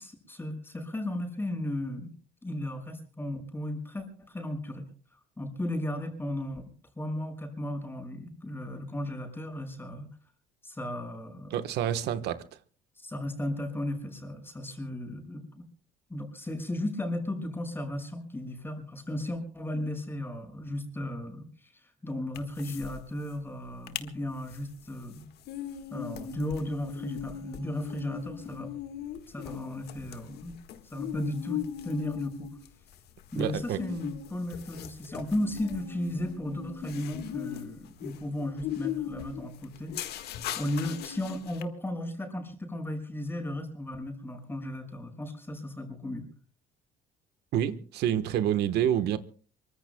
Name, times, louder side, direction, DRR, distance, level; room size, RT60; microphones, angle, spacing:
voice 1, 0.0-2.2 2.4-4.9 5.4-6.7 7.0-10.2 10.6-11.6 13.0-15.6 16.1-25.3 25.9-28.7 29.3-30.6 30.9-32.6 33.3-40.0 40.6-46.3, left 1 dB, 15° left, 5.7 m, -35 dB
voice 2, 11.5-12.4 33.4-33.8 47.5-49.2, right 10 dB, 80° right, 1.2 m, -28 dB
sound 1, 22.3-23.0 23.2-23.3 23.7-24.1 24.5-41.6, left 10 dB, 75° left, 1.6 m, -39 dB
25.5 x 24.0 x 2.3 m
cardioid pair, 110°, 17 cm